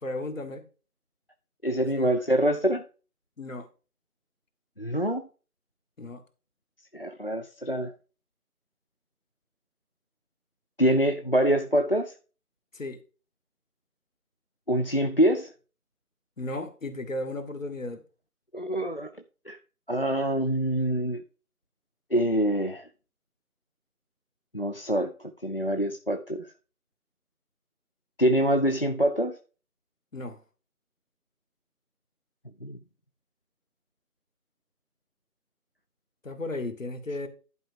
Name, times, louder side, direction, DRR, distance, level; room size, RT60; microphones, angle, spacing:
voice 1, 0.0-0.7 1.8-2.1 3.4-3.7 6.0-6.2 12.7-13.0 16.4-18.0 30.1-30.4 36.2-37.3, left 2 dB, 55° left, 1.7 m, -35 dB
voice 2, 1.6-2.8 4.8-5.2 6.9-7.9 10.8-12.1 14.7-15.5 18.5-19.1 19.5-19.6 19.9-21.2 22.1-22.9 24.5-25.1 25.4-26.4 28.2-29.4 32.6-32.8, equal, 40° left, 0.5 m, -25 dB
11.0 x 4.8 x 4.6 m
figure-of-eight pair, 160°, 46 cm